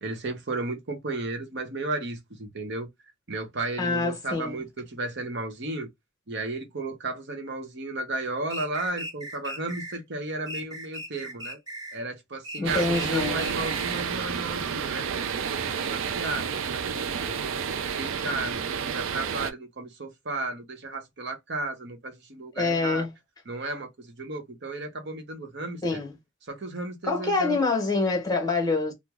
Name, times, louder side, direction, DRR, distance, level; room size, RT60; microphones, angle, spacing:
voice 1, 0.0-2.9 3.3-5.9 6.3-11.6 11.9-17.7 17.9-23.1 23.5-26.0 26.4-27.6, right 2 dB, 55° right, 0.9 m, -34 dB
voice 2, 3.8-4.6 12.6-13.4 22.6-23.1 25.8-26.1 27.0-28.9, left 3 dB, 20° left, 1.0 m, -26 dB
sound 1, 8.5-10.0 10.5-12.0 12.4-14.1, right 1 dB, 20° right, 0.6 m, -38 dB
sound 2, 12.6-19.5, right 7 dB, 70° right, 0.4 m, -30 dB
3.0 x 2.0 x 3.5 m
head